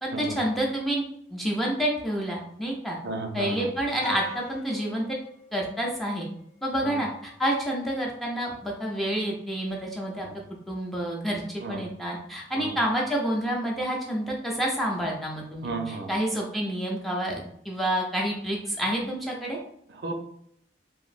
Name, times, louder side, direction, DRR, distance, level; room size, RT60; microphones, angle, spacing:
voice 1, 0.0-1.0 1.3-3.0 3.3-5.2 5.5-6.3 6.6-10.3 10.7-19.6, right 1 dB, ahead, -3 dB, 0.4 m, -28 dB
voice 2, 3.0-3.7 6.8-6.9 11.6-11.8 12.5-12.7 15.6-16.1 20.0-20.1, right 3 dB, 65° right, 3 dB, 0.4 m, -33 dB
sound 1, 4.0-6.6, left 3 dB, 30° left, 0.7 m, -42 dB
3.0 x 2.6 x 2.4 m, 0.69 s
head